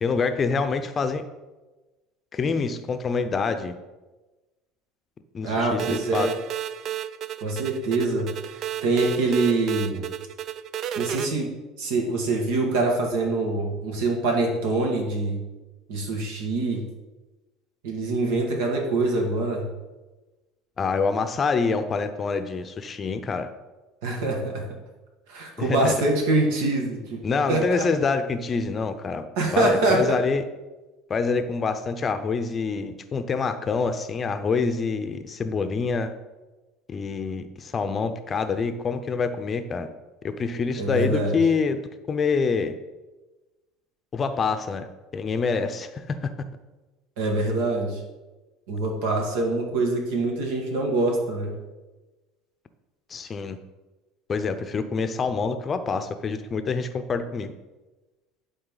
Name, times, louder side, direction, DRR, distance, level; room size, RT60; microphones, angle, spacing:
voice 1, 0.0-1.2 2.3-3.7 5.3-6.3 20.8-23.5 25.6-26.0 27.2-29.3 29.5-30.4 31.1-36.1 36.9-39.9 40.2-41.8 42.1-42.7 44.1-46.3 53.1-53.6 54.3-57.5, left 5 dB, 30° left, 9 dB, 0.6 m, -26 dB
voice 2, 5.4-6.3 7.4-10.0 11.0-11.5 11.8-15.4 15.9-16.8 17.8-19.7 24.0-24.6 25.3-27.2 27.5-27.9 29.4-30.0 40.8-41.4 47.2-48.0 48.7-51.5, right 2 dB, 80° right, 1 dB, 2.0 m, -24 dB
sound 1, 5.8-11.3, right 10 dB, 50° right, 0.4 m, -32 dB
11.0 x 4.0 x 4.0 m, 1.1 s
supercardioid pair, 115°, 0 cm